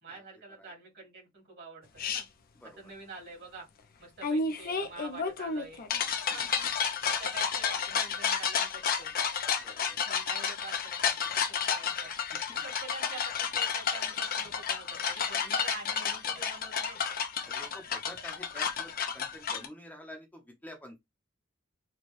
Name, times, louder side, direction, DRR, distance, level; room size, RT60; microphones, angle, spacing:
voice 1, 0.0-2.2 2.8-3.7 4.0-6.5 7.2-9.1 10.0-12.1 12.6-17.0, right 4 dB, 60° right, 2.1 m, -47 dB
sound 1, 2.0-2.2 4.2-19.7, left 6 dB, 45° left, 0.6 m, -31 dB
voice 2, 2.6-2.9 6.3-6.7 9.6-10.0 12.3-12.6 17.5-21.0, equal, 10° left, 0.7 m, -49 dB
4.3 x 2.3 x 3.1 m
head